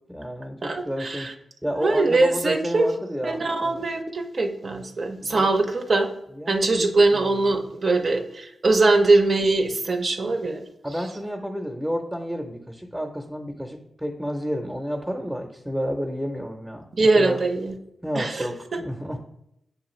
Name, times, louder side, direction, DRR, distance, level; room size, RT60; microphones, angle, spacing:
voice 1, 0.1-1.3 1.6-3.9 5.1-5.5 6.3-7.6 10.8-16.8 17.1-17.4 18.0-19.2, equal, 5° right, 2 dB, 0.6 m, -31 dB
voice 2, 0.6-1.3 1.7-2.9 3.2-6.1 6.5-10.6 17.0-17.7 18.1-18.8, right 3 dB, 55° right, 4 dB, 0.5 m, -22 dB
6.6 x 2.4 x 3.1 m, 0.80 s
supercardioid pair, 45°, 0 cm